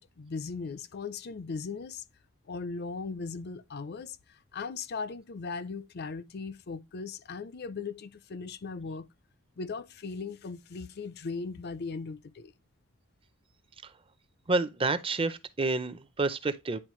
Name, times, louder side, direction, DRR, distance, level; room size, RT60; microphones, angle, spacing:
voice 1, 0.0-2.0 2.5-9.1 9.6-12.5, left 4 dB, 45° left, 0.5 m, -38 dB
voice 2, 14.5-16.8, right 3 dB, 25° right, 0.5 m, -29 dB
9.8 x 4.1 x 3.1 m
head